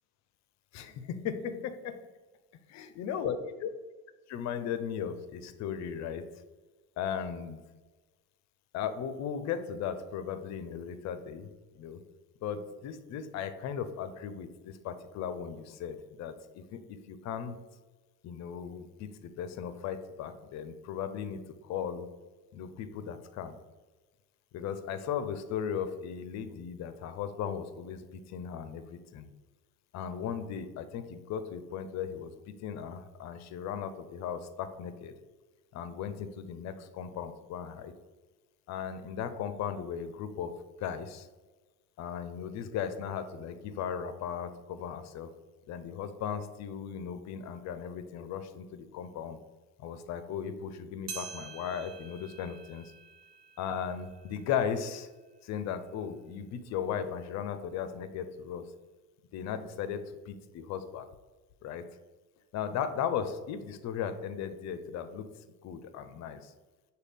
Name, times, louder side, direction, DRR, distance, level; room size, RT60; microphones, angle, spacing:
voice 1, 0.7-2.0 2.7-3.7 4.3-6.3 7.0-7.6 8.7-11.5 11.7-12.0 12.4-17.6 18.2-22.1 22.5-23.6 24.5-29.3 29.9-35.1 35.7-37.9 38.7-40.5 40.8-41.3 42.0-45.3 45.7-49.4 49.8-52.9 53.6-55.1 55.4-58.6 59.3-61.1 61.6-61.8 62.5-65.3 65.6-66.5, left 8 dB, 35° left, 10 dB, 0.4 m, -37 dB
sound 1, 51.1-55.7 56.2-56.3 57.1-57.2 58.2-58.3, right 6 dB, 70° right, 0.9 m, -48 dB
6.2 x 2.3 x 3.4 m, 1.2 s
hypercardioid pair, 75°, 48 cm